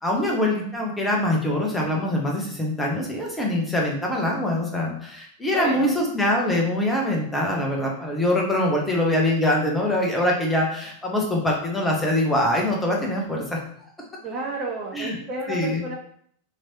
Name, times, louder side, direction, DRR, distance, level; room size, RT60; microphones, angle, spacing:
voice 1, 0.0-13.6 14.9-15.1 15.5-15.8, left 1 dB, 10° left, -1 dB, 0.8 m, -23 dB
voice 2, 5.4-5.9 14.2-15.9, right 2 dB, 30° right, -1 dB, 0.5 m, -31 dB
3.0 x 3.0 x 2.7 m, 0.63 s
figure-of-eight pair, 90°, 0 cm